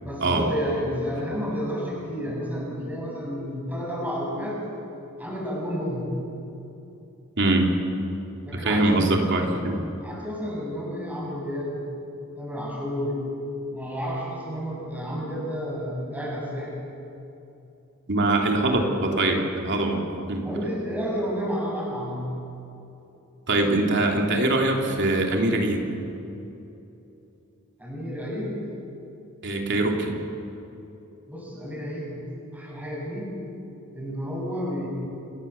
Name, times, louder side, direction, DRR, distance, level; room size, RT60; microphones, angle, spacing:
voice 1, 0.0-4.6 5.2-6.2 8.4-9.1 10.0-11.8 12.4-13.2 13.7-16.7 20.4-22.4 27.8-28.6 31.3-33.3 33.9-34.9, equal, 5° right, -4 dB, 7.4 m, -31 dB
voice 2, 7.4-7.7 8.5-9.8 18.1-20.0 20.3-20.4 23.5-25.8 29.4-30.2, right 2 dB, 55° right, 1 dB, 3.0 m, -23 dB
29.0 x 19.5 x 7.0 m, 2.9 s
head